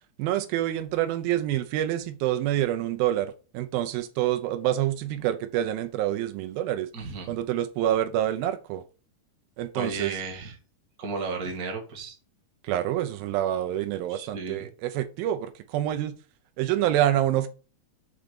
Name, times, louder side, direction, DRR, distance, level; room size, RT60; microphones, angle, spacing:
voice 1, 0.2-6.9 7.3-8.8 9.6-10.2 12.6-16.2 16.6-17.5, right 12 dB, 90° right, 2.6 m, -27 dB
voice 2, 6.9-7.4 9.7-10.5 11.0-12.2 14.1-14.7, right 4 dB, 45° right, 1.2 m, -34 dB
6.9 x 3.8 x 5.1 m
omnidirectional pair, 4.1 m